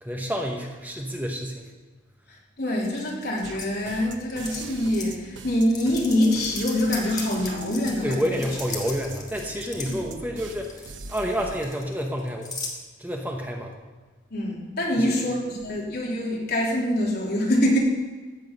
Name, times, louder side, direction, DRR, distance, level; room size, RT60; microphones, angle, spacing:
voice 1, 0.0-1.7 8.0-12.5 13.0-13.7 14.9-15.3, equal, 10° right, 1 dB, 1.1 m, -29 dB
voice 2, 2.3-8.4 9.9-10.0 14.3-17.8, left 1 dB, 55° left, -3 dB, 3.2 m, -25 dB
sound 1, 2.8-3.7 4.3-4.6 4.9-5.2 5.7-10.0 10.4-10.9 11.2-12.7, left 4 dB, 20° left, 1.7 m, -37 dB
sound 2, 3.4-11.8, right 3 dB, 75° right, 1.0 m, -42 dB
14.5 x 8.6 x 5.4 m, 1.3 s
head